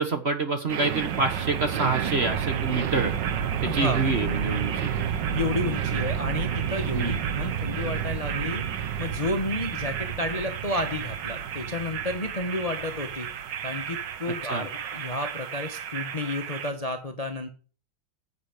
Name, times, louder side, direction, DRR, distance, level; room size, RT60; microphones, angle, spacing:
voice 1, 0.0-3.1 3.6-4.9 6.9-7.2 14.4-14.7, right 3 dB, 35° right, 6 dB, 1.3 m, -27 dB
sound 1, 0.7-16.7, right 8 dB, 65° right, 1.5 m, -30 dB
voice 2, 3.6-4.0 5.3-8.6 9.0-13.3 13.6-17.5, left 2 dB, 25° left, 5 dB, 0.9 m, -31 dB
10.0 x 8.4 x 5.1 m, 0.38 s
omnidirectional pair, 2.3 m